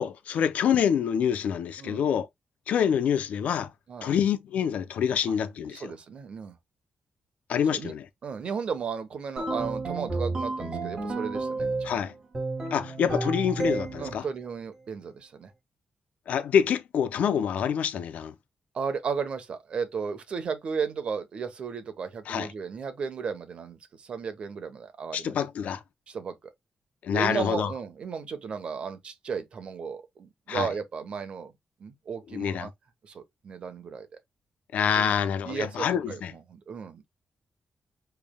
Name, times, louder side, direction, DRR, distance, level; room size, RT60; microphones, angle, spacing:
voice 1, 0.0-2.3 2.7-3.7 4.0-5.9 7.5-8.1 11.8-12.1 12.7-14.2 16.3-18.3 22.3-22.5 25.1-25.8 27.0-27.7 30.5-30.7 32.3-32.7 34.7-36.3, left 8 dB, 90° left, 0.6 m, -26 dB
voice 2, 5.7-6.6 7.7-7.9 8.2-12.0 14.0-15.5 18.7-25.4 26.1-26.4 27.1-31.5 31.8-32.7 33.0-34.1 35.0-35.1 35.4-37.1, right 6 dB, 50° right, 1.1 m, -34 dB
sound 1, 9.4-12.0 12.3-14.2, right 3 dB, 30° right, 1.7 m, -31 dB
6.9 x 3.4 x 2.3 m
wide cardioid pair, 165°, 2 cm